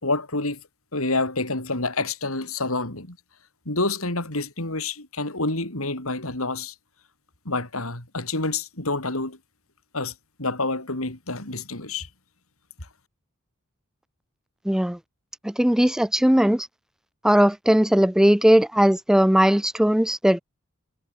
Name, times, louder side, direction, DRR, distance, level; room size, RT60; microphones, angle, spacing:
voice 1, 0.0-0.6 0.9-3.2 3.7-6.7 7.5-9.4 9.9-10.1 10.4-12.1, left 2 dB, 75° left, 5.7 m, -28 dB
voice 2, 14.7-15.0 15.4-16.7 17.2-20.4, equal, 5° right, 0.4 m, -18 dB
head